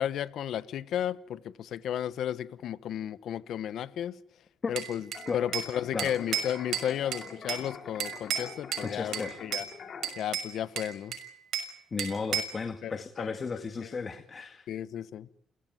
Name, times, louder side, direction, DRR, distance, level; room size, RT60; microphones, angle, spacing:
voice 1, 0.0-4.2 4.7-5.1 5.3-9.6 10.2-11.2 12.3-12.4 12.8-13.4 13.8-13.9 14.7-15.3, left 10 dB, 75° left, 1.0 m, -33 dB
Bell / Glass, 4.8-5.7 6.0-7.7 8.0-8.9 9.1-9.7 10.0-11.7 12.0-12.6, right 8 dB, 75° right, 6.3 m, -33 dB
sound 1, 5.1-10.1, left 6 dB, 55° left, 4.2 m, -45 dB
voice 2, 8.8-9.4 11.9-14.7, left 4 dB, 40° left, 1.9 m, -34 dB
28.5 x 17.0 x 9.5 m
cardioid pair, 90°, 0 cm